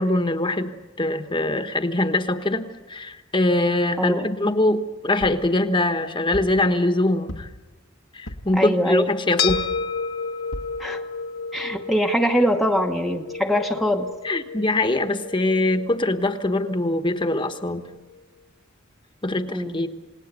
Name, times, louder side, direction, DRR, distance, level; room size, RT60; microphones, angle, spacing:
voice 1, 0.0-7.5 8.1-9.7 14.2-17.8 19.2-19.9, left 2 dB, 25° left, 8 dB, 1.3 m, -23 dB
sound 1, 5.2-5.5 6.3-6.6 7.3-7.7 8.3-8.6 9.5-9.8 10.5-10.8 11.4-11.5 11.7-11.8, left 1 dB, 85° left, 1.6 m, -35 dB
voice 2, 8.6-9.1 10.8-11.0 11.5-14.1 19.5-19.8, equal, ahead, 1 dB, 1.1 m, -22 dB
sound 2, 9.4-18.0, left 5 dB, 55° left, 1.5 m, -32 dB
29.0 x 19.0 x 8.3 m, 1.2 s
head